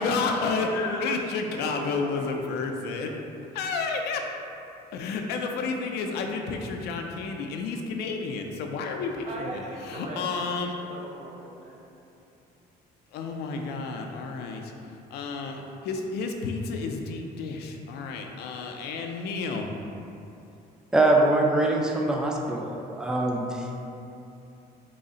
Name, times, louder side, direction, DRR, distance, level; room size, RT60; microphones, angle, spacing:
voice 1, 0.0-3.2 3.5-4.3 4.9-10.7 13.1-14.7 15.1-19.7, left 4 dB, 75° left, 3 dB, 0.4 m, -31 dB
voice 2, 0.8-1.1 1.5-2.4 9.2-11.8, right 1 dB, 45° right, -3 dB, 0.7 m, -39 dB
voice 3, 20.9-23.7, right 2 dB, 5° right, 0 dB, 0.3 m, -23 dB
3.9 x 2.0 x 3.7 m, 2.8 s
cardioid pair, 110°, 17 cm